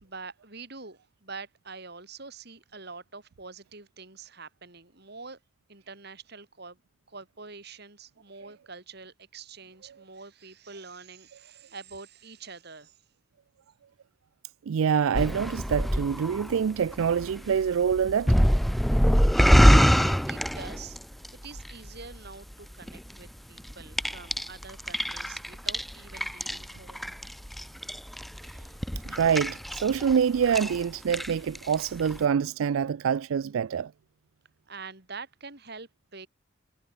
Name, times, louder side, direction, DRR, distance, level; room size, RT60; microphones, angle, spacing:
voice 1, 0.0-5.4 5.7-6.8 7.1-13.0 19.4-21.0 21.4-27.1 34.7-36.3, right 4 dB, 55° right, 3.8 m, -45 dB
voice 2, 14.7-18.4 29.1-33.9, right 7 dB, 90° right, 0.4 m, -26 dB
sound 1, 15.1-21.3 21.6-22.3 22.8-23.1 23.6-30.2 30.4-30.8 31.1-31.7 32.1-32.2, equal, ahead, 0.4 m, -24 dB
head